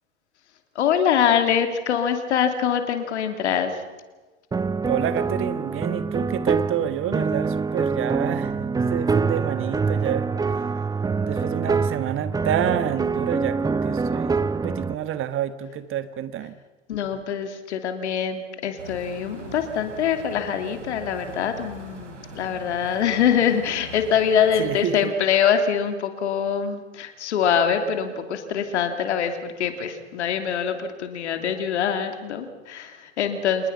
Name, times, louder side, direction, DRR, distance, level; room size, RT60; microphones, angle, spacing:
voice 1, 0.7-3.8 16.9-33.7, left 8 dB, 70° left, 7 dB, 2.9 m, -24 dB
sound 1, 4.5-14.9, right 4 dB, 10° right, 0.7 m, -25 dB
voice 2, 4.8-10.3 11.3-16.5 24.6-25.1, right 10 dB, 35° right, 13 dB, 1.5 m, -28 dB
sound 2, 18.8-24.8, right 3 dB, 75° right, 5.0 m, -42 dB
27.5 x 20.5 x 5.7 m, 1.2 s
figure-of-eight pair, 80°, 36 cm